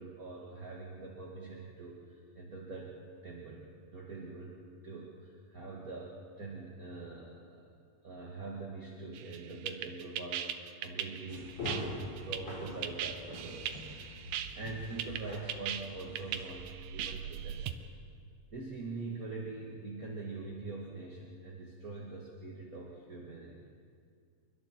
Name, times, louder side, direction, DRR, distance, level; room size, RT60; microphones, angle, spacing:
voice 1, 0.0-2.9 3.2-3.7 3.9-4.6 4.8-7.7 8.0-17.6 18.5-23.6, right 3 dB, 30° right, -2 dB, 1.9 m, -44 dB
sound 1, 9.2-17.7, right 10 dB, 75° right, 2.4 m, -39 dB
sound 2, 11.3-16.4, left 1 dB, 55° left, 6.4 m, -44 dB
29.0 x 23.5 x 4.5 m, 2.1 s
omnidirectional pair, 4.0 m